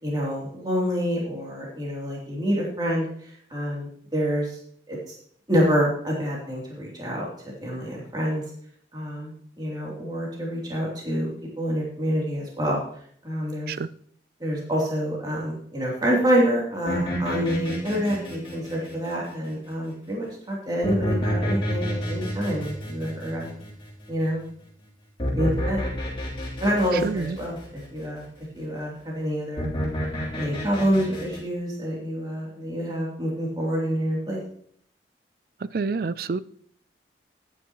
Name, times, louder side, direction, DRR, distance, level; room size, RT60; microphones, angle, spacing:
voice 1, 0.0-4.6 4.9-5.0 5.5-7.3 7.6-8.4 8.9-11.3 11.6-12.8 13.2-13.7 14.4-23.5 24.1-24.4 25.3-25.8 26.6-27.6 27.9-28.2 28.5-29.7 30.3-34.4, equal, 25° right, -4 dB, 3.0 m, -27 dB
sound 1, 16.9-19.7 20.8-24.3 25.2-27.9 29.6-31.4, equal, 30° left, 3.4 m, -29 dB
voice 2, 26.9-27.4 35.7-36.4, right 4 dB, 55° right, 17 dB, 0.4 m, -28 dB
14.0 x 9.8 x 3.1 m, 0.62 s
head